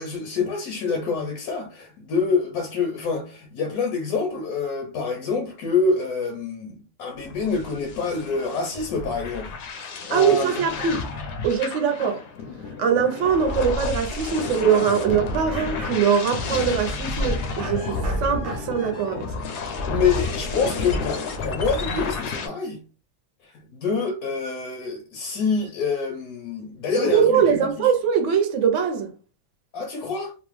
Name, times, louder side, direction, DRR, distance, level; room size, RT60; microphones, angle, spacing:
voice 1, 0.0-10.5 19.9-22.8 23.4-27.9 29.7-30.3, left 4 dB, 80° left, 1.1 m, -26 dB
sound 1, 7.2-22.5, left 3 dB, 65° left, 0.7 m, -30 dB
sound 2, 8.6-8.7 9.9-10.0 10.5-11.2 11.6-11.7 12.0-12.1 12.4-12.7 13.3-13.6 13.9-14.0 14.5-14.6 14.8-14.9 15.5-16.4 17.6-19.2 20.1-20.2 21.4-21.6, right 2 dB, 30° right, 0.7 m, -41 dB
voice 2, 10.1-11.0 11.4-12.2 12.8-19.3 27.0-29.1, right 7 dB, 65° right, 0.8 m, -22 dB
2.8 x 2.1 x 3.0 m
omnidirectional pair, 1.5 m